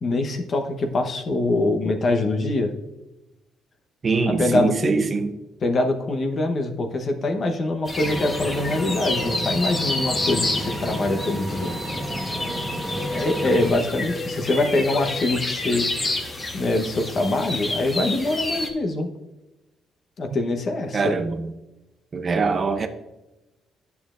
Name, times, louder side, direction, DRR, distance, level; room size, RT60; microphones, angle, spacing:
voice 1, 0.0-2.7 4.3-4.9 5.6-11.7 13.1-15.9 16.5-19.1 20.2-21.2, left 2 dB, 50° left, 1.0 m, -24 dB
voice 2, 4.0-5.4 20.9-21.5 22.1-22.9, right 4 dB, 40° right, 0.7 m, -23 dB
sound 1, 7.9-18.7, left 2 dB, 30° left, 1.3 m, -29 dB
Vehicle, 8.0-13.7, equal, 5° right, 1.5 m, -31 dB
10.5 x 6.9 x 2.5 m
cardioid pair, 90°, 0 cm